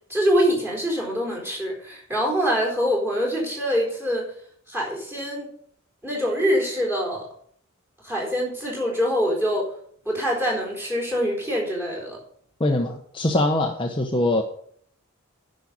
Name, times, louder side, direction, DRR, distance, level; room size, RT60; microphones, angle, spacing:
voice 1, 0.1-4.3 4.7-5.5 6.0-7.3 8.0-9.7 10.0-12.2, equal, 10° right, -3 dB, 4.3 m, -24 dB
voice 2, 12.6-14.4, left 1 dB, 25° left, 2 dB, 0.9 m, -22 dB
10.0 x 6.4 x 8.6 m, 0.62 s
head